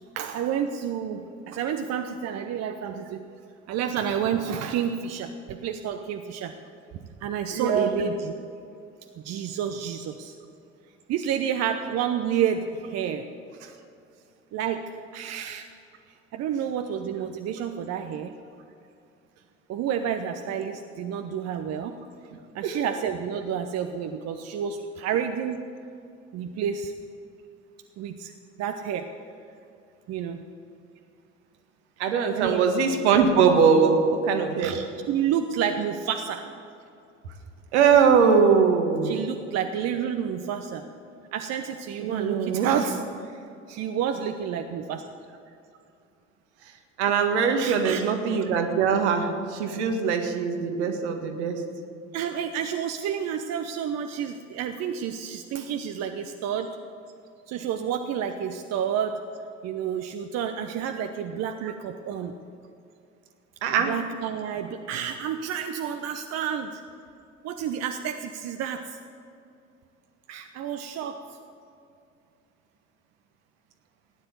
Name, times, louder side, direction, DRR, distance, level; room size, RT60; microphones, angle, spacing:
voice 1, 0.1-3.2 3.7-6.5 7.2-8.3 9.2-10.3 11.1-13.3 14.5-15.7 16.3-18.3 19.7-22.0 22.5-25.7 26.3-26.9 28.0-28.3 28.6-29.1 30.1-30.4 32.3-32.6 34.6-36.5 39.0-40.9 41.3-43.4 43.7-45.0 47.6-48.0 52.1-56.8 57.5-59.2 59.6-62.3 63.9-66.8 67.4-69.0 70.3-71.3, right 8 dB, 45° right, 6 dB, 0.9 m, -30 dB
voice 2, 7.5-7.9 13.6-13.7 22.6-22.8 32.0-34.8 37.7-39.1 42.0-42.7 47.0-51.6 61.6-61.7 63.6-63.9, right 6 dB, 65° right, 5 dB, 1.8 m, -22 dB
16.0 x 10.0 x 8.2 m, 2.5 s
figure-of-eight pair, 60°, 36 cm